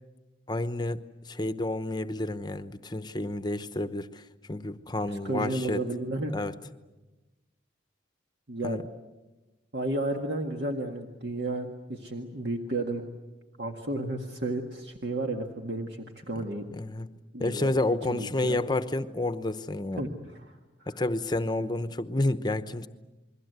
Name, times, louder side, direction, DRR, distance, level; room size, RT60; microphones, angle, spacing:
voice 1, 0.5-4.2 4.5-5.8 6.3-6.5 8.6-8.8 16.7-17.1 17.4-20.0 21.0-22.9, left 2 dB, 20° left, 11 dB, 0.9 m, -30 dB
voice 2, 5.1-6.4 8.5-8.8 9.7-13.0 13.6-16.7 17.3-18.6 20.0-21.0, right 2 dB, 60° right, 2 dB, 1.8 m, -33 dB
28.5 x 22.0 x 8.1 m, 1.1 s
head